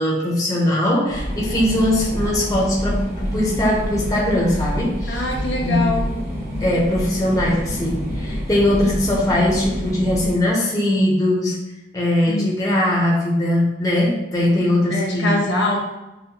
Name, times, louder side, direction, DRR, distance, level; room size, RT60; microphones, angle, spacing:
voice 1, 0.0-5.3 5.6-6.0 6.6-11.6 11.9-15.4, left 1 dB, 20° left, -3 dB, 0.6 m, -20 dB
sound 1, 1.1-10.3, equal, 40° right, 1.5 m, -27 dB
voice 2, 5.1-6.1 12.3-12.5 14.9-15.8, left 2 dB, 90° left, -1 dB, 1.0 m, -23 dB
5.5 x 2.1 x 2.8 m, 0.98 s
head